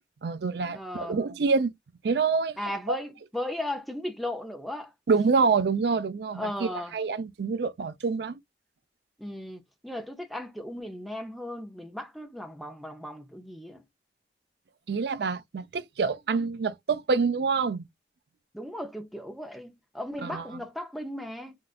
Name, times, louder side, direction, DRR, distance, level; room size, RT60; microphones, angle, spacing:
voice 1, 0.2-1.7 2.0-2.6 2.9-3.0 5.1-6.5 6.9-8.4 14.9-17.9 20.2-20.4, right 4 dB, 70° right, 0.4 m, -26 dB
voice 2, 0.7-1.2 2.6-4.9 5.2-5.5 6.3-6.9 9.2-13.8 18.5-21.6, left 1 dB, ahead, 0.5 m, -36 dB
3.6 x 2.3 x 2.3 m
head